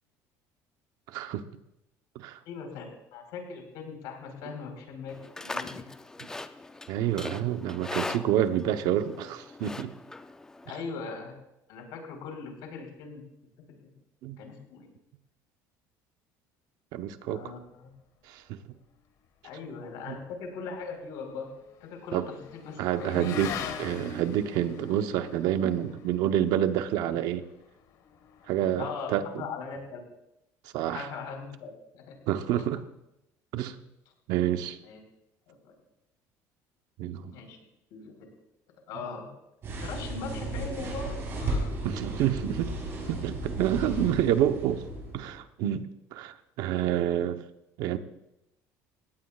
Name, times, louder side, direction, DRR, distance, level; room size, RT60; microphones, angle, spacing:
voice 1, 1.1-1.4 2.1-2.4 6.9-9.9 14.2-14.4 16.9-17.4 18.3-18.6 20.1-20.2 22.1-22.3 22.8-23.5 23.8-27.4 28.5-29.4 30.7-31.1 32.3-32.8 33.5-33.8 34.3-34.8 37.0-37.3 41.8-42.7 43.1-44.8 45.1-47.4 47.8-48.0, right 11 dB, 65° right, 9 dB, 0.9 m, -28 dB
voice 2, 2.5-2.9 3.1-5.8 8.8-9.0 10.7-11.3 11.7-13.2 14.4-14.9 17.3-17.9 19.4-21.5 21.8-23.8 28.8-30.0 30.9-32.1 34.8-35.0 35.5-35.6 37.2-37.6 37.9-38.1 38.9-39.3 39.8-41.1 41.4-41.7, left 5 dB, 70° left, 3 dB, 4.2 m, -40 dB
Livestock farm animals working animals, 5.1-10.8, left 2 dB, 10° left, 0.4 m, -40 dB
Motorcycle / Accelerating revving vroom, 20.4-29.2, left 8 dB, 55° left, 1.5 m, -43 dB
sound 1, 39.6-45.4, right 2 dB, 35° right, 6.7 m, -34 dB
20.0 x 17.5 x 2.4 m, 0.87 s
cardioid pair, 170°, 7 cm